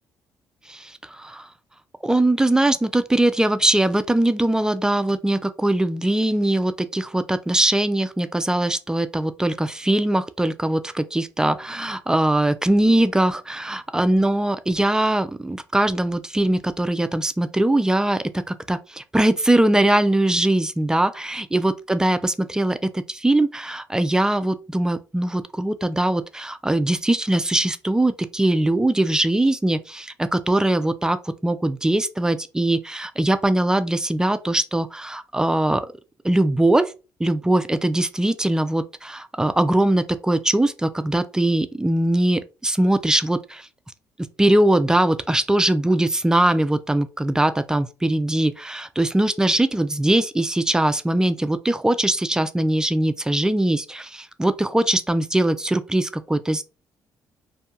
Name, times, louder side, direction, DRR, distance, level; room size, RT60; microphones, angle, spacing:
voice 1, 0.7-1.5 2.0-35.8 36.2-36.9 37.2-43.7 44.4-56.6, right 1 dB, 10° right, 0.3 m, -21 dB
2.6 x 2.2 x 2.8 m
supercardioid pair, 75°, 7 cm